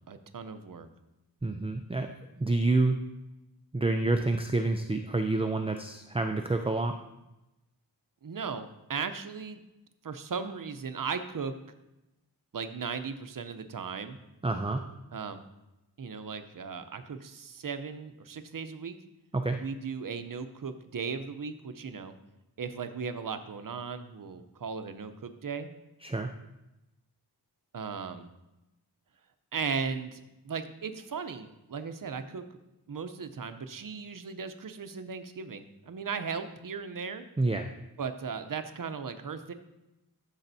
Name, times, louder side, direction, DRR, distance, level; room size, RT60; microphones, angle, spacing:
voice 1, 0.1-0.9 8.2-9.6 10.0-11.5 12.5-14.2 15.1-15.4 16.0-19.0 19.6-22.1 22.6-25.7 27.7-28.3 29.5-32.4 32.9-37.2 38.0-39.5, right 5 dB, 55° right, 9 dB, 0.7 m, -37 dB
voice 2, 1.4-2.1 2.4-3.0 3.7-6.9 14.4-14.8 19.3-19.6 26.0-26.3 37.4-37.7, right 2 dB, 15° right, 5 dB, 0.4 m, -28 dB
13.0 x 7.1 x 2.7 m, 0.95 s
wide cardioid pair, 95°, 39 cm